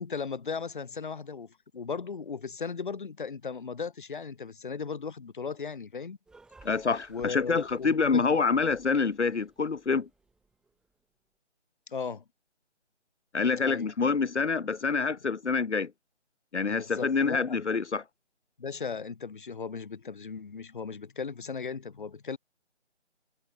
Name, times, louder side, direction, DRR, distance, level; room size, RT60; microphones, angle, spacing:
voice 1, 0.0-6.2 7.1-8.4 11.9-12.2 13.7-13.9 15.1-15.2 16.7-17.6 18.6-22.4, left 5 dB, 45° left, 1.4 m, -37 dB
sound 1, 6.3-10.9, right 3 dB, ahead, 4.5 m, -60 dB
voice 2, 6.6-10.1 13.3-15.9 16.5-18.0, left 4 dB, 70° left, 1.2 m, -27 dB
figure-of-eight pair, 165°, 36 cm